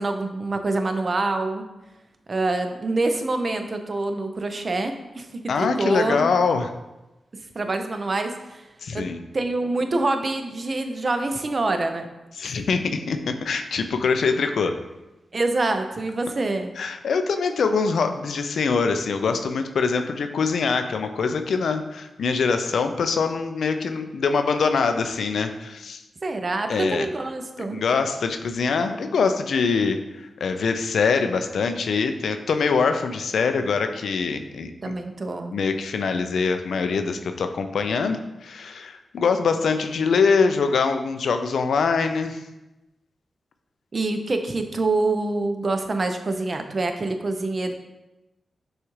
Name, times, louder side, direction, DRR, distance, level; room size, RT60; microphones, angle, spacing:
voice 1, 0.0-1.6 2.3-6.3 7.5-8.6 8.9-9.0 9.3-12.1 15.3-16.7 26.2-27.8 34.8-35.5 43.9-47.8, right 2 dB, 45° right, 6 dB, 0.5 m, -26 dB
voice 2, 5.5-6.7 8.8-9.2 12.4-14.7 16.8-26.0 26.7-27.1 27.7-35.0 35.5-42.4, left 5 dB, 80° left, 7 dB, 0.3 m, -23 dB
6.1 x 2.4 x 3.1 m, 1.0 s
cardioid pair, 60°, 0 cm